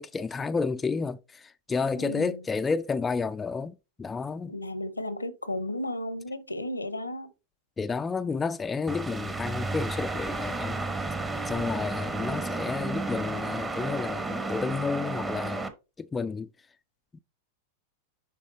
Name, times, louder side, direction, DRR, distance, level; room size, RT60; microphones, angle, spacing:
voice 1, 0.0-4.5 7.8-10.9 11.5-15.7 16.0-16.5, left 4 dB, 15° left, 0.3 m, -31 dB
voice 2, 1.9-2.4 4.5-7.3, left 1 dB, 85° left, 0.8 m, -34 dB
sound 1, 8.9-15.7, right 3 dB, 15° right, 0.9 m, -32 dB
10.0 x 3.6 x 3.0 m
figure-of-eight pair, 90°, 0 cm